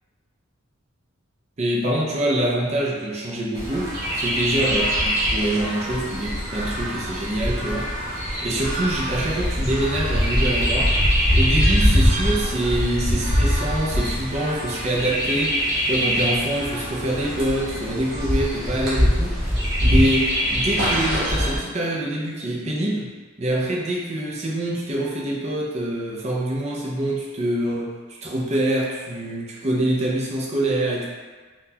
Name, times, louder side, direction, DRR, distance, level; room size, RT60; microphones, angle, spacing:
voice 1, 1.6-7.9 8.4-11.0 11.3-19.4 19.8-23.1 23.4-28.0 28.2-31.1, right 1 dB, 30° right, -3 dB, 0.5 m, -25 dB
Chirp tweet, 3.5-21.6, equal, 45° right, 1.0 m, -23 dB
3.8 x 2.3 x 2.8 m, 1.4 s
head